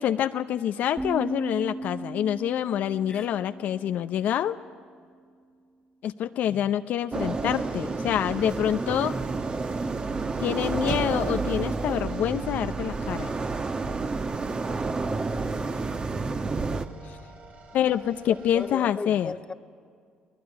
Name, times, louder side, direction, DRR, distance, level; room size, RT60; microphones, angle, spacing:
voice 1, 0.0-4.6 6.0-9.2 10.4-13.4 17.1-17.2 17.7-19.3, left 10 dB, 65° left, 0.6 m, -26 dB
sound 1, 1.0-4.8, right 2 dB, 10° right, 0.9 m, -37 dB
sound 2, 7.1-16.9, right 3 dB, 30° right, 1.2 m, -30 dB
sound 3, 7.4-18.7, right 3 dB, 60° right, 3.2 m, -49 dB
voice 2, 18.3-19.5, left 4 dB, 25° left, 0.9 m, -37 dB
24.5 x 18.5 x 9.7 m
supercardioid pair, 70°, 3 cm